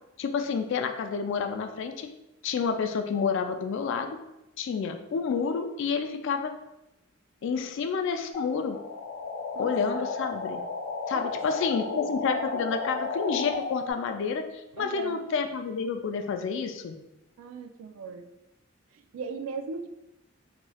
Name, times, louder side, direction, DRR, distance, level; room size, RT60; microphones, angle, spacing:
voice 1, 0.2-2.1 2.4-4.2 4.6-6.5 7.4-8.8 9.6-10.6 11.1-17.0, left 5 dB, 60° left, 7 dB, 0.3 m, -29 dB
sound 1, 8.3-13.9, left 4 dB, 25° left, 0.8 m, -34 dB
voice 2, 9.5-10.1 11.1-12.2 14.7-15.2 17.4-18.3 18.9-19.9, right 4 dB, 85° right, 7 dB, 0.3 m, -39 dB
3.0 x 3.0 x 2.3 m, 0.91 s
head